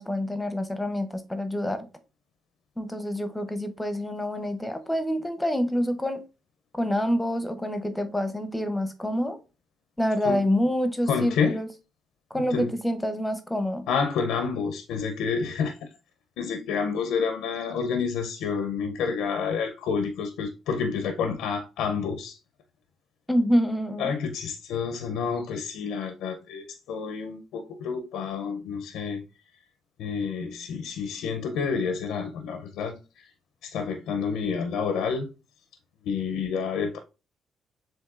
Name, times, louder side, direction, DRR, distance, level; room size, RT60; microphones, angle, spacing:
voice 1, 0.0-1.9 2.8-6.2 6.7-9.4 10.0-11.7 12.3-13.8 23.3-24.1, equal, 5° left, 0.7 m, -27 dB
voice 2, 11.1-11.6 12.5-12.7 13.9-15.9 16.4-22.4 24.0-29.2 30.0-33.2 33.6-35.3 36.0-37.0, left 6 dB, 90° left, 0.5 m, -29 dB
7.1 x 2.6 x 2.4 m
cardioid pair, 90°, 0 cm